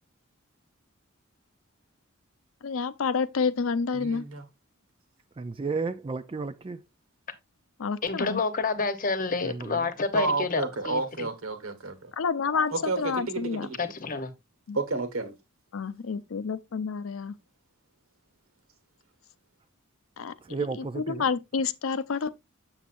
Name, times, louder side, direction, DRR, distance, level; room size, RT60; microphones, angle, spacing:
voice 1, 2.6-4.2 7.8-8.4 12.2-13.7 14.7-14.8 15.7-17.4 20.2-20.3 20.7-22.3, left 5 dB, 70° left, 0.5 m, -29 dB
voice 2, 3.9-4.4 10.1-12.1 12.7-13.9 14.7-15.3, right 3 dB, 80° right, 1.4 m, -31 dB
voice 3, 5.4-6.8 9.4-9.9 20.5-21.2, right 4 dB, 25° right, 0.4 m, -33 dB
voice 4, 8.0-11.3 13.8-14.3, left 4 dB, 40° left, 1.0 m, -29 dB
7.2 x 6.9 x 2.5 m
head